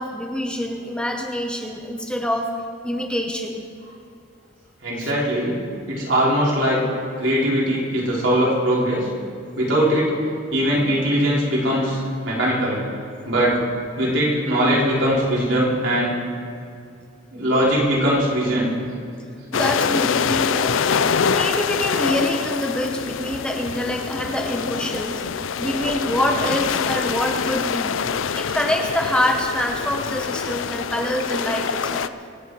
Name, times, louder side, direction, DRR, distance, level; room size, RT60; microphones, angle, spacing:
voice 1, 0.0-2.5 2.8-3.7 5.0-5.1 19.5-20.8 21.3-28.0 28.3-32.1, equal, 5° left, 2 dB, 0.9 m, -25 dB
voice 2, 4.8-5.5 5.9-6.8 7.2-9.1 9.6-10.1 10.5-12.8 13.3-13.6 14.0-16.1 17.3-18.7, equal, 75° right, -5 dB, 4.1 m, -20 dB
sound 1, 19.5-32.1, left 6 dB, 90° left, 0.5 m, -25 dB
24.5 x 8.5 x 4.8 m, 2.4 s
head